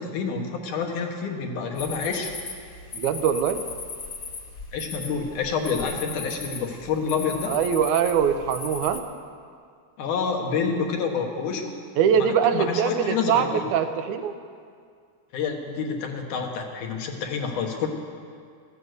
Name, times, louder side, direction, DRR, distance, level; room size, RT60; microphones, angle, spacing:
voice 1, 0.0-2.3 4.7-7.6 10.0-11.7 12.5-13.6 15.3-17.9, left 5 dB, 75° left, 2 dB, 2.8 m, -28 dB
sound 1, 1.7-9.0, left 4 dB, 45° left, 1.8 m, -37 dB
voice 2, 2.9-3.6 7.5-9.0 12.0-14.3, right 8 dB, 75° right, 9 dB, 2.1 m, -23 dB
14.5 x 11.5 x 7.9 m, 2.2 s
omnidirectional pair, 3.7 m